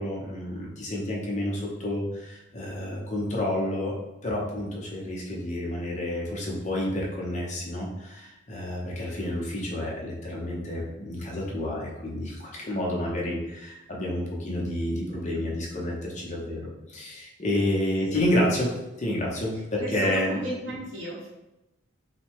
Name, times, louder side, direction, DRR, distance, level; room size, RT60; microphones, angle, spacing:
voice 1, 0.0-4.0 4.2-20.4, left 1 dB, 35° left, -3 dB, 0.9 m, -29 dB
voice 2, 19.8-21.3, right 1 dB, 70° right, -4 dB, 1.4 m, -35 dB
5.6 x 2.3 x 3.6 m, 0.95 s
head